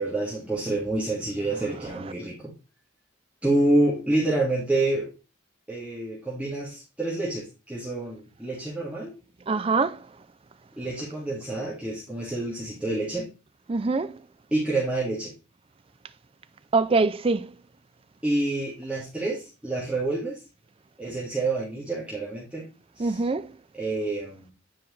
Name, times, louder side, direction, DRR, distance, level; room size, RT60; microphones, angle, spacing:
voice 1, 0.0-2.5 3.4-5.1 5.7-9.1 10.8-13.3 14.5-15.3 18.2-20.4 21.0-22.7 23.0-23.2 23.7-24.5, right 2 dB, 5° right, 1.8 m, -28 dB
voice 2, 9.5-10.0 13.7-14.1 16.7-17.5 23.0-23.5, right 3 dB, 25° right, 0.4 m, -23 dB
9.7 x 4.7 x 3.1 m
head